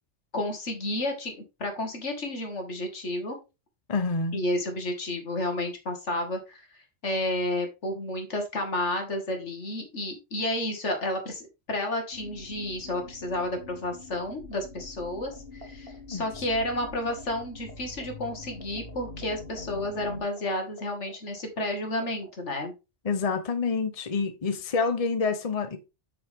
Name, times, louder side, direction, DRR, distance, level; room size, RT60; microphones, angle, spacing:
voice 1, 0.3-3.4 4.3-22.7, left 1 dB, 80° left, 2.3 m, -31 dB
voice 2, 3.9-4.4 16.1-16.3 23.0-25.8, left 4 dB, 35° left, 0.9 m, -27 dB
sound 1, 12.1-20.2, left 2 dB, 50° left, 2.5 m, -44 dB
sound 2, 14.5-15.0 15.3-17.4 17.7-17.8 18.0-21.7 21.9-22.3, right 2 dB, 55° right, 2.3 m, -46 dB
8.0 x 6.1 x 3.6 m
omnidirectional pair, 1.2 m